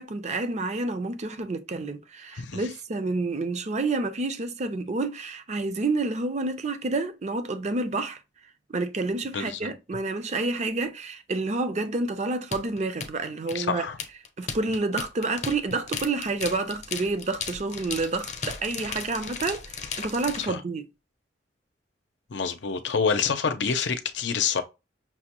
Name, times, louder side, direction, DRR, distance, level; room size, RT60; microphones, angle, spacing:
voice 1, 0.0-8.2 8.7-13.9 14.4-20.9, right 3 dB, 40° right, 0.5 m, -29 dB
voice 2, 2.3-2.7 9.3-9.7 13.5-14.0 20.4-20.6 22.3-24.6, left 6 dB, 80° left, 0.6 m, -27 dB
sound 1, 12.5-20.5, left 5 dB, 40° left, 0.7 m, -35 dB
6.0 x 2.2 x 2.9 m
head